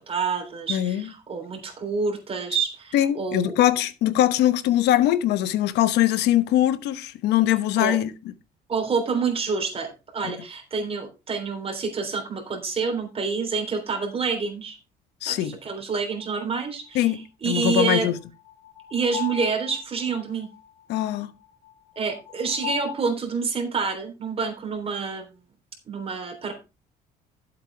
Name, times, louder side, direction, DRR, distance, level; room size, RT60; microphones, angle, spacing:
voice 1, 0.0-3.5 7.8-8.0 8.7-14.8 15.3-18.1 18.9-20.5 22.0-25.3 25.9-26.5, right 5 dB, 35° right, 3.4 m, -28 dB
voice 2, 0.7-1.1 2.9-8.1 15.2-15.6 16.9-18.2 20.9-21.3, left 13 dB, 80° left, 1.0 m, -22 dB
sound 1, 16.2-16.3 18.1-22.9, left 11 dB, 65° left, 4.3 m, -38 dB
11.5 x 8.2 x 3.4 m
cardioid pair, 110°, 17 cm